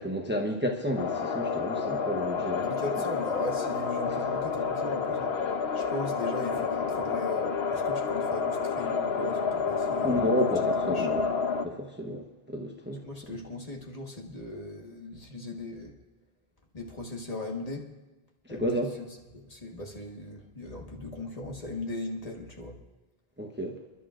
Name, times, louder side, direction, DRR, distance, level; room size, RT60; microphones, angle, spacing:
voice 1, 0.0-2.7 10.0-11.2 11.6-13.0 18.5-18.9 23.4-23.8, equal, 10° right, 1 dB, 0.9 m, -31 dB
sound 1, 1.0-11.7, left 5 dB, 85° left, 1.1 m, -29 dB
voice 2, 2.6-5.4 5.7-10.5 10.9-11.2 13.0-16.0 16.7-17.9 18.5-19.1 19.3-22.8, left 2 dB, 40° left, 0 dB, 1.6 m, -38 dB
28.5 x 11.0 x 2.5 m, 1.1 s
omnidirectional pair, 1.0 m